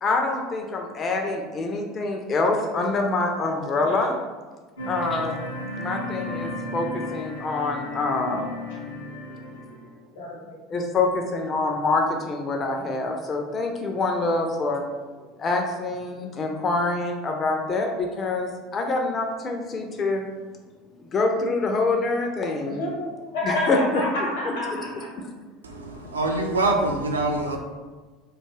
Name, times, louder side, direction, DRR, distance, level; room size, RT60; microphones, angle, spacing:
voice 1, 0.0-4.2 4.9-5.5 5.8-8.5 10.7-14.8 15.4-20.2 21.1-22.8 23.4-23.8, left 3 dB, 35° left, 2 dB, 0.4 m, -26 dB
voice 2, 3.7-4.1 8.7-10.6 13.1-13.2 16.1-16.2 22.6-25.1, left 1 dB, 65° left, -4 dB, 0.9 m, -31 dB
sound 1, 4.8-9.9, left 1 dB, 85° left, 0.6 m, -34 dB
voice 3, 25.6-27.6, right 2 dB, 80° right, 2 dB, 0.3 m, -25 dB
2.4 x 2.3 x 3.1 m, 1.3 s
figure-of-eight pair, 70°, 0 cm